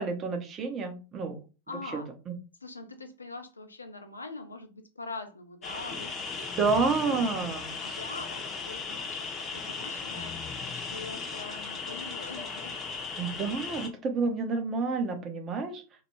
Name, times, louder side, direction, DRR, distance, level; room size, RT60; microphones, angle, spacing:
voice 1, 0.0-1.4 6.6-7.7 13.2-15.8, right 4 dB, 25° right, 0.6 m, -29 dB
voice 2, 1.7-2.1 2.6-6.5 7.0-7.3 7.8-9.2 9.5-10.4 10.7-12.8, left 3 dB, 80° left, 0.4 m, -43 dB
sound 1, 5.6-13.9, left 4 dB, 25° left, 0.6 m, -37 dB
2.2 x 2.0 x 3.1 m
figure-of-eight pair, 90°, 0 cm